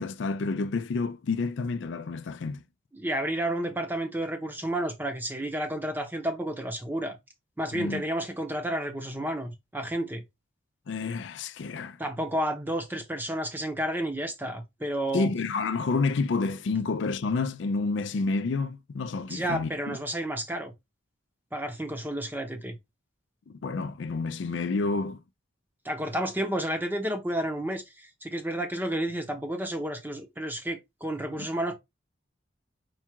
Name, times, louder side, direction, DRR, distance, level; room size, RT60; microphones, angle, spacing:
voice 1, 0.0-2.6 7.7-8.0 10.9-12.0 15.1-20.0 23.5-25.2 31.4-31.5, left 4 dB, 70° left, 0.4 m, -29 dB
voice 2, 2.9-7.2 7.6-10.2 12.0-15.3 19.2-20.7 21.5-22.8 25.8-31.7, right 1 dB, 10° right, 0.7 m, -31 dB
4.7 x 2.4 x 4.4 m
head